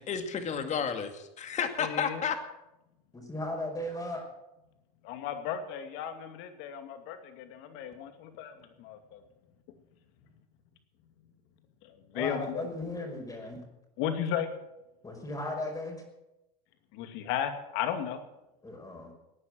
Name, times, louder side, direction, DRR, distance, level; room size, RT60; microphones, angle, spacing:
voice 1, 0.1-2.4, left 7 dB, 35° left, 7 dB, 2.3 m, -31 dB
voice 2, 1.8-2.2 5.0-9.2 11.8-12.7 14.0-14.5 16.9-18.2, left 9 dB, 60° left, 8 dB, 2.4 m, -35 dB
voice 3, 3.1-4.2 12.1-13.6 15.0-16.0 18.6-19.1, left 1 dB, 15° left, 1 dB, 5.3 m, -36 dB
17.5 x 9.8 x 7.7 m, 0.92 s
hypercardioid pair, 95°, 21 cm